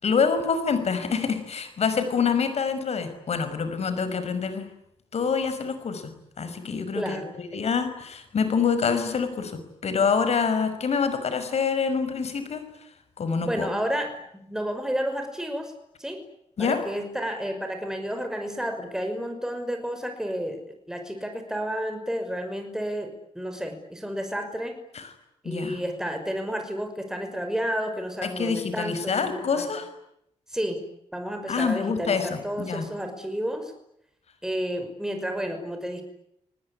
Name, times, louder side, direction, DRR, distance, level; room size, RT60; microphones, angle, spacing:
voice 1, 0.0-4.7 5.1-6.1 6.4-9.5 9.8-12.6 13.2-13.7 16.6-16.8 24.9-25.1 25.4-25.8 28.2-29.9 31.5-32.9, left 5 dB, 65° left, 10 dB, 5.8 m, -26 dB
voice 2, 6.9-7.4 13.4-14.2 14.5-15.7 16.0-16.2 16.6-24.8 25.4-29.7 30.5-30.8 31.1-33.7 34.4-36.0, equal, 5° right, 5 dB, 5.8 m, -31 dB
30.0 x 20.0 x 9.9 m, 0.77 s
cardioid pair, 85°, 12 cm